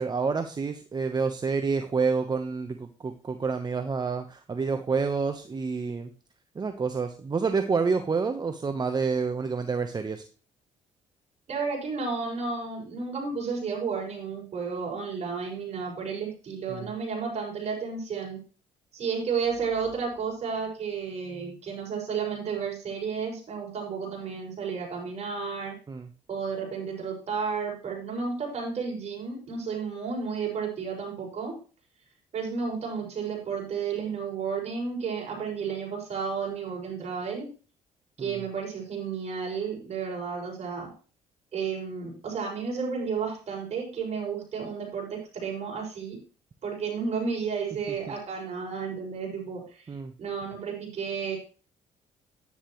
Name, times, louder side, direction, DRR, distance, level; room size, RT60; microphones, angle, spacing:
voice 1, 0.0-6.1 6.5-10.2 16.7-16.9 25.9-26.1 38.2-38.4 49.9-50.1, right 5 dB, 30° right, 7 dB, 1.1 m, -28 dB
voice 2, 11.5-18.4 18.9-25.8 26.3-31.5 32.3-37.5 38.2-40.9 41.5-46.2 46.6-49.9 50.2-51.4, right 5 dB, 55° right, 0 dB, 6.4 m, -32 dB
10.5 x 9.9 x 3.2 m, 0.35 s
cardioid pair, 85°, 13 cm